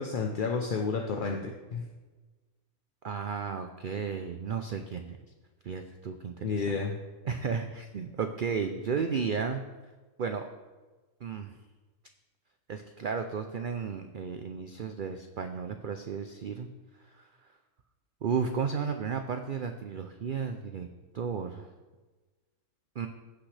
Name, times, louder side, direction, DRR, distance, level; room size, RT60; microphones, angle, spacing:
voice 1, 0.0-1.8 6.4-7.0 9.0-9.1, left 4 dB, 50° left, 1 dB, 0.7 m, -31 dB
voice 2, 3.0-5.2 5.6-6.8 7.3-9.6 10.2-10.5 11.2-11.5 12.7-16.7 17.2-17.3 18.2-20.9 21.1-21.7 23.0-23.1, right 6 dB, 85° right, 7 dB, 0.4 m, -33 dB
15.5 x 6.1 x 3.3 m, 1.3 s
omnidirectional pair, 1.5 m